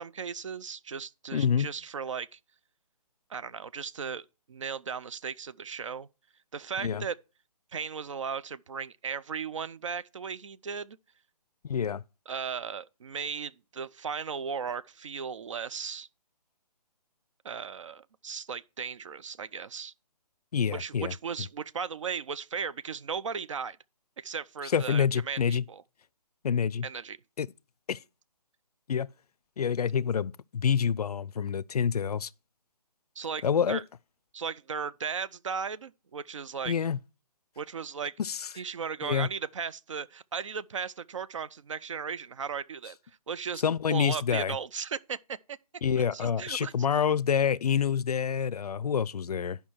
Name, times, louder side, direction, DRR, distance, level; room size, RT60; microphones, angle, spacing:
voice 1, 0.0-2.4 3.3-6.1 6.5-7.2 7.7-11.0 12.3-16.1 17.4-19.9 20.7-23.8 24.2-25.8 26.8-27.2 33.2-33.8 34.3-36.7 37.6-38.1 38.6-43.0 43.3-43.6 43.9-45.6 46.1-46.7, right 6 dB, 50° right, 0.4 m, -36 dB
voice 2, 1.3-1.7 6.8-7.0 11.6-12.0 20.5-21.1 24.7-25.6 26.4-26.9 27.4-27.5 27.9-28.0 28.9-29.1 29.6-32.3 33.4-33.8 36.7-37.0 38.2-38.5 39.0-39.3 43.6-44.6 45.8-49.6, left 7 dB, 70° left, 0.4 m, -27 dB
10.5 x 5.5 x 4.3 m
figure-of-eight pair, 155°, 20 cm